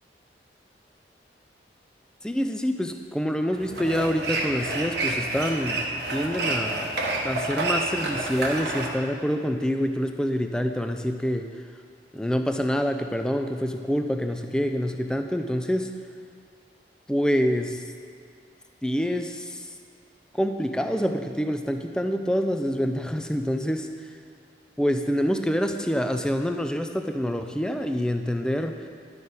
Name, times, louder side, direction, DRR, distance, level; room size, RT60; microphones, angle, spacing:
voice 1, 2.2-6.9 7.2-11.5 12.1-15.9 17.1-17.8 18.8-19.7 20.3-23.9 24.8-28.9, equal, 5° left, 6 dB, 0.4 m, -26 dB
sound 1, 3.5-8.9, right 2 dB, 70° right, 1.1 m, -29 dB
10.5 x 6.8 x 4.1 m, 2.2 s
head